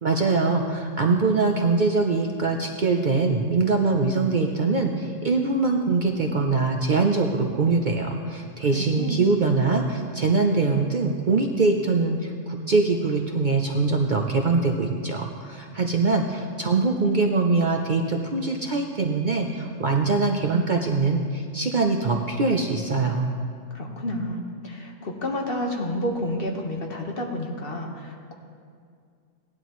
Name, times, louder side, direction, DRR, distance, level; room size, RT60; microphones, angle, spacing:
voice 1, 0.0-23.3, right 3 dB, 50° right, 2 dB, 0.7 m, -23 dB
voice 2, 8.7-9.3 23.7-28.3, left 1 dB, 45° left, 1 dB, 1.5 m, -30 dB
17.5 x 11.0 x 3.1 m, 2.2 s
omnidirectional pair, 1.3 m